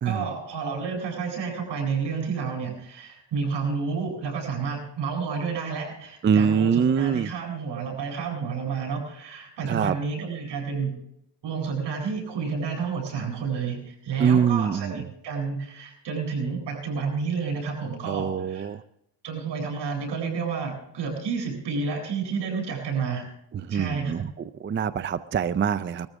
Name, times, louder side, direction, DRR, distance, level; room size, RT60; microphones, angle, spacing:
voice 1, 0.0-10.9 11.4-18.7 19.2-23.3 23.7-24.2, right 5 dB, 80° right, 1 dB, 7.9 m, -30 dB
voice 2, 6.2-7.3 9.6-9.9 14.2-15.0 18.1-18.8 23.7-24.3 24.6-26.1, right 7 dB, 30° right, 13 dB, 0.4 m, -24 dB
20.5 x 14.0 x 3.5 m, 0.78 s
cardioid pair, 125°, 42 cm